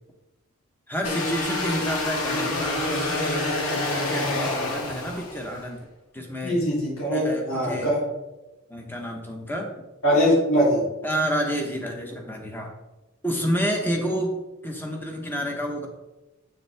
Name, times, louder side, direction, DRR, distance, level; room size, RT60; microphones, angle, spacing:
voice 1, 0.9-5.8 6.1-6.6 7.1-7.9 8.7-9.7 11.0-12.7 13.2-14.3 14.6-15.9, equal, 10° left, 2 dB, 1.1 m, -29 dB
sound 1, 1.0-5.6, left 2 dB, 90° left, 1.9 m, -27 dB
voice 2, 6.4-7.2 7.5-8.0 10.0-10.8, equal, 75° left, -5 dB, 3.0 m, -21 dB
7.4 x 7.1 x 3.5 m, 1.0 s
head